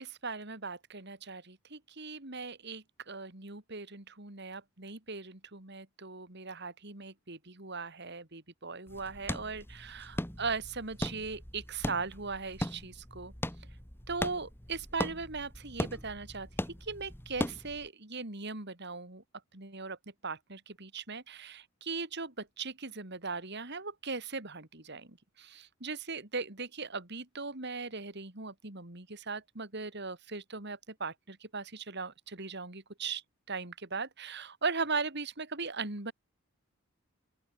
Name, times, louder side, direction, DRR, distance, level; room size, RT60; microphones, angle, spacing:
voice 1, 0.0-13.3 14.1-19.2 19.5-20.0 20.2-33.2 33.5-36.1, right 4 dB, 55° right, 3.3 m, -39 dB
sound 1, 8.9-17.9, left 1 dB, 10° left, 2.5 m, -39 dB
open air
head